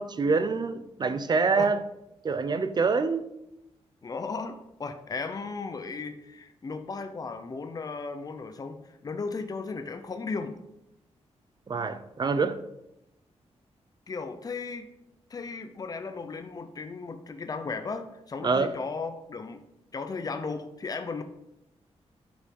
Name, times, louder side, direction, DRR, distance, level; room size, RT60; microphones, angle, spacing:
voice 1, 0.0-1.8 2.2-3.3 11.7-12.6 18.4-18.7, right 4 dB, 40° right, 0.6 m, -26 dB
voice 2, 4.0-10.6 14.1-14.9 15.3-19.6 19.9-21.2, left 4 dB, 35° left, 0.8 m, -35 dB
10.5 x 5.3 x 5.4 m
wide cardioid pair, 135°, 11 cm